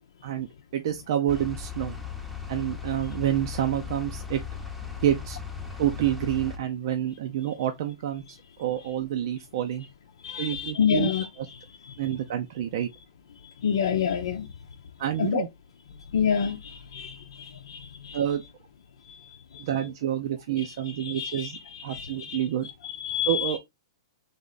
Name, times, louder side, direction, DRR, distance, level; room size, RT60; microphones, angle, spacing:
voice 1, 0.7-2.0 2.5-4.4 5.0-5.4 5.8-9.9 10.4-11.1 12.0-12.9 15.0-15.5 18.1-18.4 19.6-21.6 21.8-22.7 23.3-23.6, right 11 dB, 60° right, 0.6 m, -28 dB
sound 1, 1.3-6.6, left 6 dB, ahead, 0.8 m, -37 dB
voice 2, 10.2-12.2 13.4-14.5 15.2-15.5 16.0-18.5 19.0-19.9 20.6-23.6, left 7 dB, 75° left, 0.7 m, -30 dB
3.6 x 3.1 x 3.9 m
hypercardioid pair, 140°, 3 cm